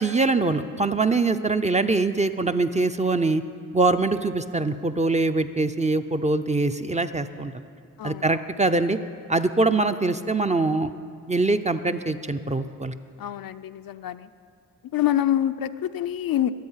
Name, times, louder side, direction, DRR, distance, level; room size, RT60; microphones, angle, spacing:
voice 1, 0.0-3.4 3.7-7.5 8.0-9.0 9.3-10.9 11.3-12.9, right 3 dB, 20° right, 9 dB, 0.5 m, -23 dB
voice 2, 8.0-8.4 13.2-14.3 14.9-16.5, left 11 dB, 65° left, 10 dB, 0.5 m, -26 dB
22.0 x 7.8 x 5.7 m, 2.3 s
cardioid pair, 75°, 38 cm